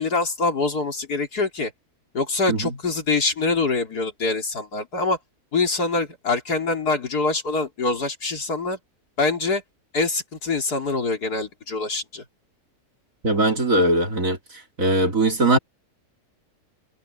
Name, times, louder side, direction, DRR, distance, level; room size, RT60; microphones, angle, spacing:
voice 1, 0.0-1.7 2.1-5.2 5.5-8.8 9.2-9.6 9.9-12.2, left 3 dB, 80° left, 3.9 m, -24 dB
voice 2, 13.2-14.4 14.8-15.6, right 2 dB, 60° right, 3.8 m, -20 dB
omnidirectional pair, 1.6 m